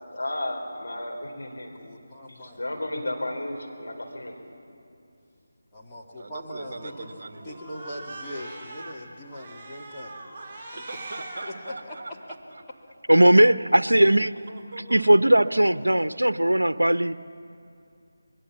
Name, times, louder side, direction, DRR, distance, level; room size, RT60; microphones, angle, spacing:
voice 1, 0.1-1.7 2.5-4.4, left 1 dB, 70° left, 2 dB, 4.3 m, -33 dB
voice 2, 1.8-2.7 5.7-7.1 7.4-10.2 10.7-10.8 11.4-12.2, equal, 10° left, -6 dB, 2.4 m, -41 dB
voice 3, 6.1-7.6 10.8-12.6 14.5-15.0 15.9-16.0, right 2 dB, 35° right, 5 dB, 1.7 m, -41 dB
Cat, 6.6-8.9 9.3-11.5, right 2 dB, 15° right, 4.5 m, -41 dB
voice 4, 13.1-14.3 14.9-17.1, right 1 dB, 80° right, 13 dB, 0.7 m, -18 dB
23.0 x 21.5 x 7.4 m, 2.6 s
figure-of-eight pair, 160°, 0 cm